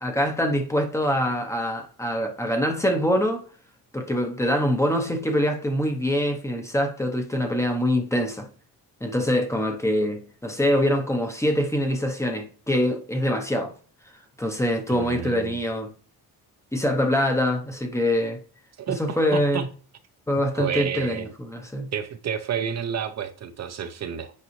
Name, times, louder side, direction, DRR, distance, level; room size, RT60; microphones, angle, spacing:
voice 1, 0.0-3.4 3.9-8.5 9.0-13.7 14.4-15.9 16.7-18.4 19.0-19.7 20.3-21.9, equal, 10° left, 0.7 m, -24 dB
voice 2, 14.9-15.6 18.9-19.6 20.5-21.3 21.9-24.3, right 8 dB, 45° right, 0.6 m, -30 dB
8.4 x 5.3 x 3.1 m
cardioid pair, 180°, 37 cm